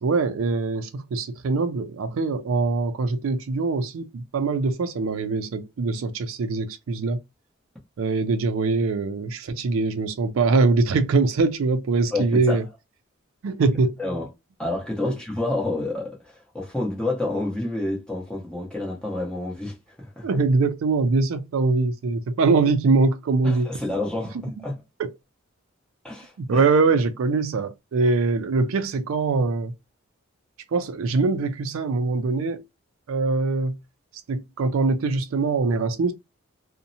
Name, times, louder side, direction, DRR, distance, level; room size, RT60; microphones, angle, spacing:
voice 1, 0.0-7.2 8.0-12.6 13.4-13.9 15.0-15.1 20.2-23.7 24.6-24.7 25.0-25.1 26.4-29.7 30.7-32.6 33.1-33.8 34.3-36.1, right 3 dB, 80° right, 0.4 m, -23 dB
voice 2, 12.1-12.6 14.0-14.3 14.6-20.3 23.4-24.8 26.0-26.6, left 2 dB, 5° left, 0.9 m, -29 dB
2.6 x 2.1 x 2.6 m
head